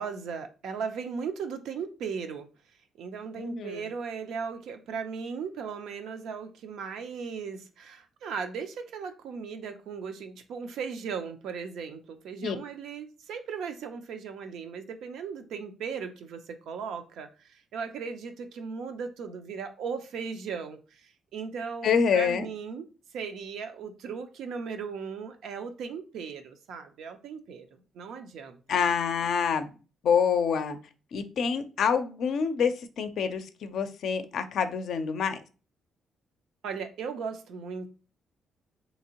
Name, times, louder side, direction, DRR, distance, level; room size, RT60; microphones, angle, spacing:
voice 1, 0.0-2.5 3.0-22.8 23.1-28.8 36.6-37.9, right 6 dB, 80° right, 7 dB, 0.5 m, -37 dB
voice 2, 3.4-3.9 12.4-12.6 21.8-22.5 28.7-29.7 30.0-30.8 31.1-35.4, left 6 dB, 65° left, 9 dB, 0.4 m, -27 dB
3.5 x 2.8 x 2.8 m, 0.34 s
cardioid pair, 90°, 0 cm